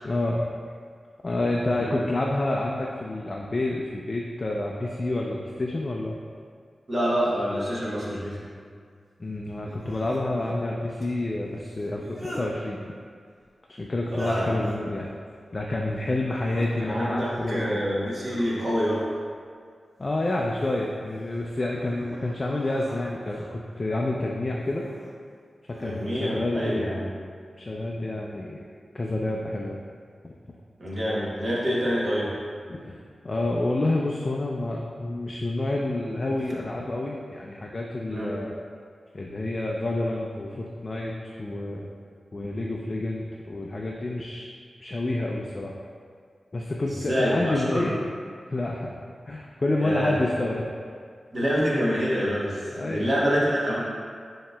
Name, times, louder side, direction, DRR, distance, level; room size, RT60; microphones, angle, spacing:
voice 1, 0.0-0.5 1.2-6.2 9.2-12.9 13.7-15.1 15.5-17.8 20.0-24.8 25.8-27.0 27.6-28.7 28.9-29.8 30.2-30.3 32.7-33.0 33.2-38.6 39.1-41.9 42.3-44.5 44.8-45.7 46.5-47.9 48.5-48.9 49.3-50.7 52.7-53.1, left 2 dB, 35° left, -1 dB, 0.3 m, -28 dB
voice 2, 6.9-8.5 14.1-14.5 16.8-19.0 25.8-27.1 30.8-32.3 38.1-38.4 47.0-47.9 49.8-50.1 51.3-53.8, equal, 40° right, -7 dB, 1.1 m, -26 dB
sound 1, 7.2-7.3 9.6-10.2 11.8-12.5 14.0-14.7 16.2-16.7 17.2-17.7 18.1-19.0 20.3-20.9 21.5-23.5 24.6-25.1 25.7-26.2, equal, 20° right, 1.3 m, -40 dB
7.1 x 2.8 x 2.3 m, 2.1 s
wide cardioid pair, 90°, 0 cm